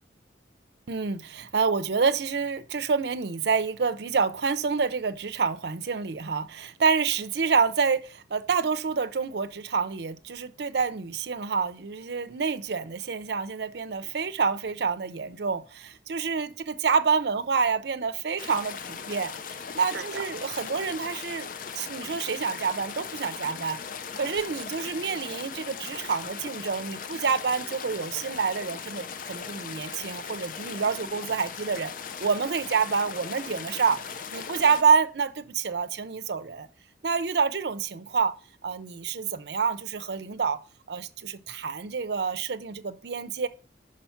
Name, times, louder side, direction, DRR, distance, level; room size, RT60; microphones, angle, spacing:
voice 1, 0.9-19.3 19.8-21.5 21.8-23.8 24.2-31.9 32.2-36.7 37.0-38.3 38.6-40.6 40.9-43.5, right 5 dB, 65° right, 0.5 m, -27 dB
sound 1, 18.4-34.8, left 6 dB, 45° left, 0.4 m, -38 dB
5.6 x 4.9 x 5.7 m
head